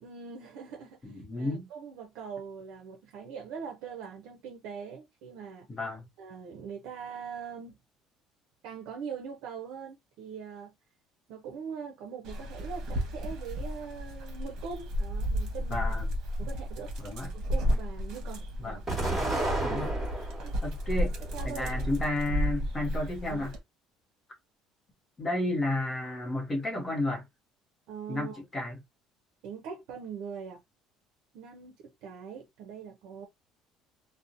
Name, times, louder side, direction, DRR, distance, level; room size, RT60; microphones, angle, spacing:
voice 1, 0.0-5.7 6.2-7.8 8.6-10.7 11.3-15.9 16.4-17.0 17.3-18.8 19.7-19.9 20.4-20.5 21.3-21.7 23.3-23.5 27.9-28.4 29.4-30.6 31.3-33.3, right 6 dB, 75° right, 0.5 m, -42 dB
voice 2, 1.0-1.7 5.7-6.1 15.7-16.1 17.0-17.3 18.6-18.8 19.6-19.9 20.6-21.1 21.4-23.5 25.2-27.2 28.1-28.7, left 1 dB, 20° left, 0.8 m, -32 dB
Dog, 12.2-23.6, equal, 55° right, 1.0 m, -33 dB
Explosion, 18.9-20.5 21.0-21.9, right 2 dB, 5° right, 1.3 m, -32 dB
2.7 x 2.1 x 2.5 m
cardioid pair, 145°, 0 cm